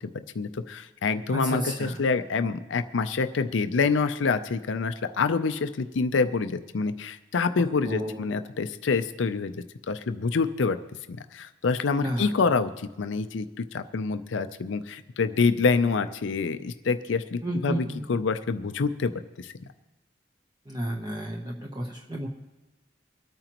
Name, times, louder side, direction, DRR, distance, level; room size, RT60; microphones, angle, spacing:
voice 1, 0.0-10.8 11.1-19.1 19.4-19.5, left 4 dB, 85° left, 10 dB, 0.5 m, -27 dB
voice 2, 1.3-2.0 7.6-8.4 12.0-12.4 17.4-18.1 20.7-22.3, equal, 20° right, 0 dB, 0.9 m, -32 dB
25.0 x 9.0 x 3.0 m, 1.1 s
head